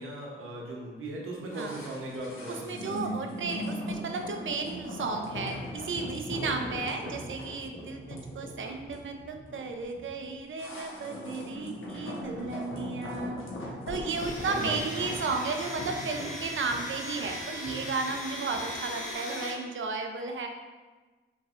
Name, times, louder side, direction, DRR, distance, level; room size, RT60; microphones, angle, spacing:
voice 1, 0.0-3.2 14.5-14.7, right 1 dB, 85° right, -2 dB, 1.0 m, -38 dB
sound 1, 1.5-18.8 19.1-19.2, left 1 dB, 70° left, 1.0 m, -39 dB
voice 2, 2.5-13.4 13.9-20.5, right 4 dB, 65° right, 4 dB, 0.6 m, -34 dB
Domestic sounds home sounds, 14.0-19.5, left 1 dB, 35° left, 1.4 m, -39 dB
5.4 x 3.3 x 2.5 m, 1.3 s
cardioid pair, 55°, 21 cm